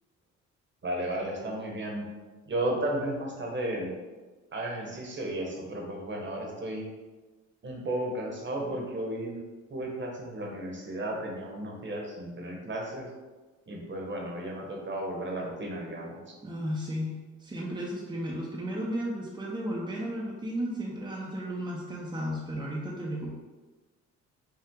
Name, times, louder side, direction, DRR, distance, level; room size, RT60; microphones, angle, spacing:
voice 1, 0.8-2.1 2.5-3.9 4.5-6.8 7.6-9.4 9.7-13.1 13.7-16.2, right 1 dB, 40° right, 0 dB, 1.2 m, -34 dB
voice 2, 16.4-23.4, equal, 15° right, -4 dB, 0.7 m, -34 dB
5.6 x 2.4 x 3.7 m, 1.3 s
cardioid pair, 90°, 30 cm